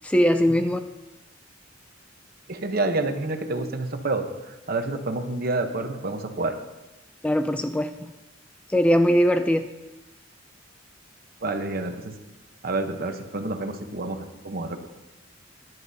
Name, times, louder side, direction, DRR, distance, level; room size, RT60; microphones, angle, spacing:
voice 1, 0.0-0.8 7.2-8.1 8.7-9.7, equal, 5° left, 8 dB, 0.3 m, -21 dB
voice 2, 2.5-4.3 4.7-6.5 11.4-12.2 12.6-14.9, right 2 dB, 50° right, 7 dB, 0.9 m, -28 dB
16.0 x 10.5 x 2.8 m, 1.0 s
head